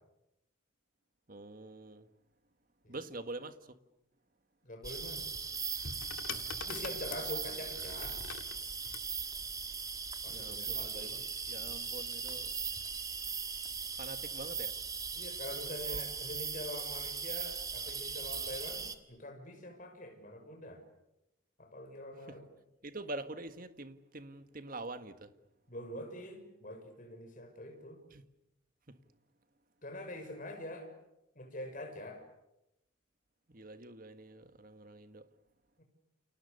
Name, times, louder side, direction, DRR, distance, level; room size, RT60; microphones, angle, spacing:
voice 1, 1.3-2.1 2.9-3.8 10.2-11.2 11.5-12.5 14.0-14.8 22.3-22.4 22.8-25.3 28.1-28.2 28.9-29.0 33.5-35.3, right 2 dB, 40° right, 1.6 m, -45 dB
voice 2, 4.6-5.3 6.6-8.2 10.2-11.2 15.1-20.8 21.6-22.5 25.7-28.0 29.8-30.9 31.3-32.3 35.8-35.9, left 1 dB, 40° left, 6.3 m, -45 dB
sound 1, 4.8-19.0, right 5 dB, 15° right, 1.7 m, -39 dB
sound 2, 5.4-9.1 10.2-10.5, left 6 dB, 80° left, 2.1 m, -45 dB
30.0 x 29.5 x 6.7 m
head